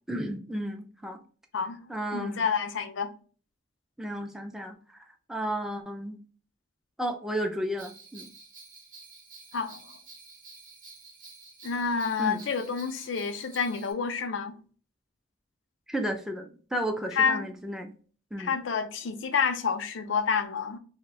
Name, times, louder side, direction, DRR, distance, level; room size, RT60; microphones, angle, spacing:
voice 1, 0.1-1.2 1.9-2.4 4.0-6.2 7.0-8.3 12.2-12.4 15.9-17.9 18.3-18.5, equal, 5° right, 0.4 m, -33 dB
voice 2, 2.1-3.1 9.5-9.8 11.6-14.5 17.1-17.5 18.4-20.8, left 5 dB, 90° left, 0.5 m, -28 dB
Bell, 7.8-13.9, right 4 dB, 45° right, 0.7 m, -50 dB
2.5 x 2.1 x 3.5 m
head